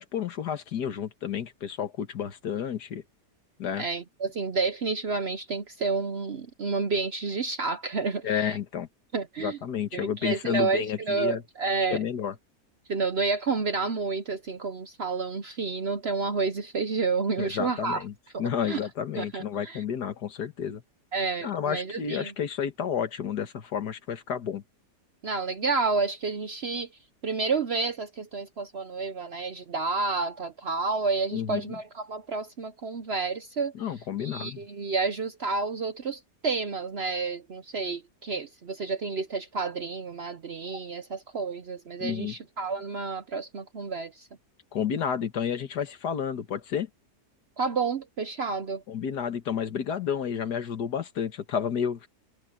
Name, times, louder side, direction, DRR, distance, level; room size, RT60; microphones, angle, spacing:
voice 1, 0.0-3.0 3.6-3.8 8.2-8.9 9.4-11.4 11.9-12.3 17.4-18.1 18.4-20.8 21.4-24.6 31.3-31.8 33.7-34.7 42.0-42.4 44.7-46.9 48.9-52.1, left 8 dB, 75° left, 1.9 m, -31 dB
voice 2, 3.8-8.6 9.1-9.6 9.9-12.0 12.9-18.0 18.3-18.8 19.2-19.8 21.1-22.3 25.2-26.9 27.2-33.7 34.2-44.3 47.6-48.8, right 4 dB, 50° right, 0.8 m, -30 dB
omnidirectional pair, 1.8 m